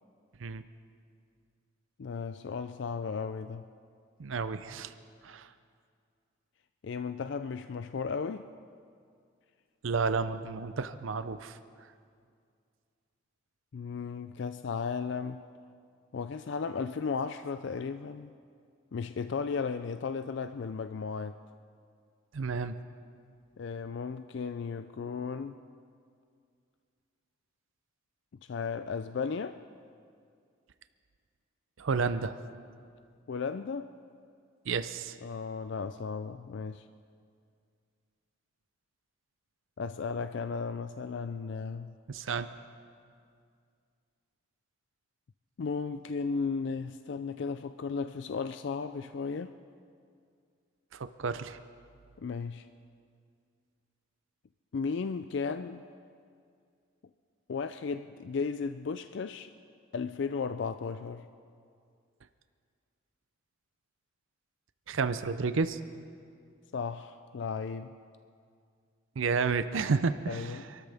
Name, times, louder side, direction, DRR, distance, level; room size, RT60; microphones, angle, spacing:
voice 1, 2.0-3.6 6.8-8.5 13.7-15.4 16.1-18.3 18.9-21.4 23.6-25.6 28.5-29.6 33.3-33.9 35.2-36.8 39.8-41.9 45.6-49.5 52.2-52.7 54.7-55.8 57.5-59.5 59.9-61.3 66.7-67.9 70.3-70.7, left 5 dB, 55° left, 10 dB, 0.4 m, -35 dB
voice 2, 4.2-4.9 5.2-5.5 9.8-11.6 22.3-22.7 31.8-32.3 34.7-35.2 42.1-42.5 50.9-51.6 64.9-65.8 69.2-70.8, right 4 dB, 70° right, 11 dB, 0.5 m, -31 dB
27.0 x 13.0 x 3.5 m, 2.3 s
head